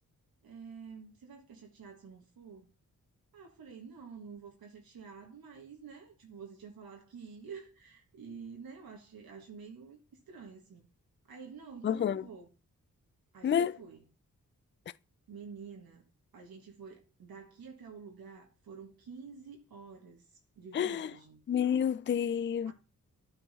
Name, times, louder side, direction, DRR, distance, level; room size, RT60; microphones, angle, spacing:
voice 1, 0.4-2.7 3.3-10.0 10.3-10.9 11.3-12.5 13.3-14.0 15.3-16.1 16.3-21.4 22.6-22.7, right 5 dB, 80° right, 1.7 m, -49 dB
voice 2, 11.8-12.2 13.4-13.8 20.7-21.1 21.5-22.7, left 8 dB, 35° left, 0.4 m, -29 dB
9.6 x 4.6 x 4.2 m
supercardioid pair, 40°, 36 cm